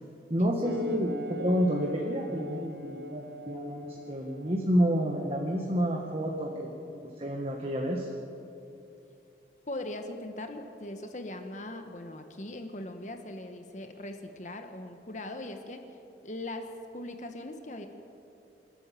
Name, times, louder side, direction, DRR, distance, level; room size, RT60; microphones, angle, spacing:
voice 1, 0.3-8.1, equal, 35° right, 0 dB, 1.6 m, -29 dB
sound 1, 0.6-5.6, left 1 dB, 75° right, 1.6 m, -41 dB
voice 2, 9.7-15.8 16.2-17.9, left 1 dB, 40° left, 6 dB, 1.3 m, -40 dB
27.5 x 12.5 x 7.6 m, 2.8 s
head